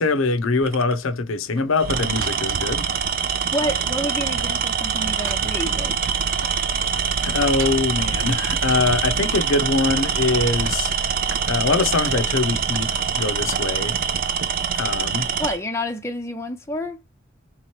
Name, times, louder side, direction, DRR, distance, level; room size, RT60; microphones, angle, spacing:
voice 1, 0.0-2.8 7.2-11.0 11.5-14.0 14.7-15.3, left 3 dB, 85° left, 0.6 m, -23 dB
Tools, 0.6-0.9 1.8-15.6, right 6 dB, 45° right, 0.4 m, -24 dB
sound 1, 1.6-3.4 3.6-4.1 4.4-6.8 7.1-8.2 8.7-9.6 10.0-10.2 10.5-10.9 11.3-11.5 12.1-12.2 12.7-13.1 13.5-13.8 14.4-14.5, right 4 dB, 65° right, 0.8 m, -41 dB
voice 2, 3.5-5.9 15.4-17.0, equal, 15° left, 0.5 m, -28 dB
3.6 x 3.0 x 2.9 m
head